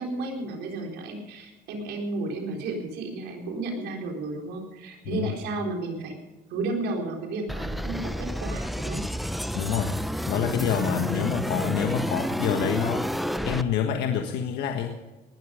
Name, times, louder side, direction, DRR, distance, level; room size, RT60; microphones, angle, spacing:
voice 1, 0.0-6.1 6.5-9.0 12.0-12.3, right 2 dB, 80° right, 2 dB, 4.1 m, -33 dB
sound 1, 7.5-13.6, equal, ahead, 0.8 m, -30 dB
voice 2, 9.5-10.0 10.3-13.1 13.4-15.0, left 8 dB, 85° left, 4 dB, 1.5 m, -27 dB
19.0 x 12.5 x 5.1 m, 1.2 s
cardioid pair, 110°, 17 cm